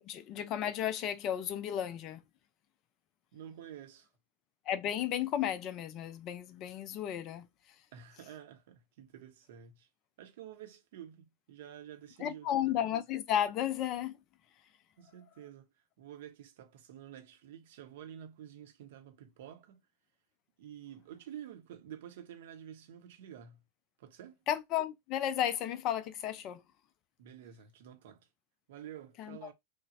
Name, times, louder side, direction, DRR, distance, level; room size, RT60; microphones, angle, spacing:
voice 1, 0.1-2.2 4.7-7.4 12.2-14.2 24.5-26.6 29.2-29.5, left 10 dB, 35° left, 0.4 m, -33 dB
voice 2, 3.3-4.1 7.9-9.9 10.2-12.9 15.0-15.7 16.0-19.8 20.6-23.6 24.0-24.4 27.2-28.3 28.7-29.5, right 10 dB, 55° right, 0.6 m, -50 dB
3.1 x 2.0 x 2.5 m
figure-of-eight pair, 90°, 0 cm